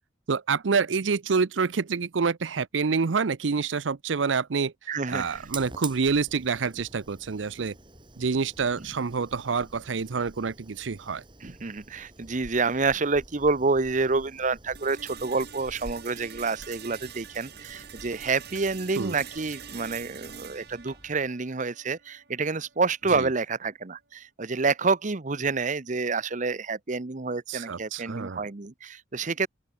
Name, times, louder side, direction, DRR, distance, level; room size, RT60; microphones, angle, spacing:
voice 1, 0.3-4.7 5.1-7.8 8.2-11.2 19.0-19.2 23.1-23.3 27.5-28.5, right 5 dB, 85° right, 0.6 m, -27 dB
voice 2, 4.9-5.4 11.4-29.5, right 4 dB, 40° right, 0.9 m, -28 dB
Fire, 5.1-21.3, right 3 dB, 25° right, 5.0 m, -48 dB
sound 1, 14.8-22.8, right 8 dB, 60° right, 2.7 m, -45 dB
open air
head